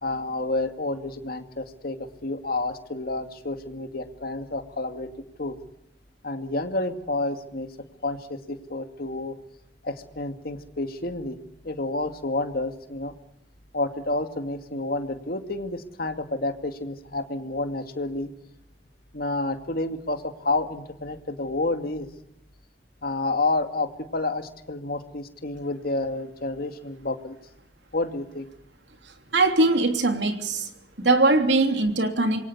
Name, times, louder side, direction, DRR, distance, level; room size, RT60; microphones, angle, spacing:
voice 1, 0.0-5.1 5.4-5.6 6.2-7.7 8.0-9.4 9.8-11.4 11.6-13.2 13.7-18.3 19.1-22.1 23.0-27.4 27.9-28.5, left 2 dB, 55° left, 2.3 m, -29 dB
voice 2, 29.3-30.7 31.0-32.4, right 2 dB, 70° right, 3.1 m, -21 dB
26.5 x 23.0 x 6.9 m
head